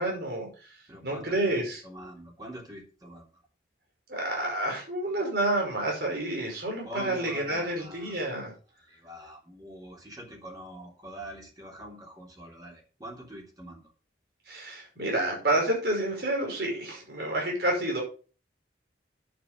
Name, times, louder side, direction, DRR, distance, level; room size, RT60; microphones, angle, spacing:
voice 1, 0.0-0.8 1.0-1.8 4.1-8.5 14.5-18.0, right 1 dB, 60° right, 0 dB, 5.6 m, -29 dB
voice 2, 0.9-3.2 6.8-8.2 8.9-13.8, right 1 dB, 20° right, -1 dB, 3.0 m, -44 dB
9.3 x 8.4 x 5.2 m, 0.37 s
head